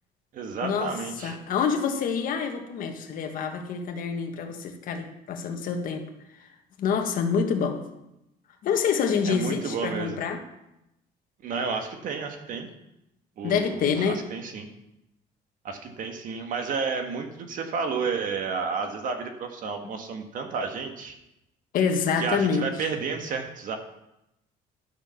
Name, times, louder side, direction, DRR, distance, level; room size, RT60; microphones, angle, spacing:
voice 1, 0.3-1.4 9.3-10.2 11.4-12.7 13.4-14.7 15.6-21.1 22.2-23.8, right 5 dB, 55° right, 5 dB, 1.5 m, -31 dB
voice 2, 1.2-6.1 6.8-7.8 8.6-10.4 13.4-14.2 21.7-22.7, left 6 dB, 55° left, 4 dB, 1.5 m, -26 dB
11.5 x 6.8 x 5.8 m, 0.88 s
cardioid pair, 135°, 17 cm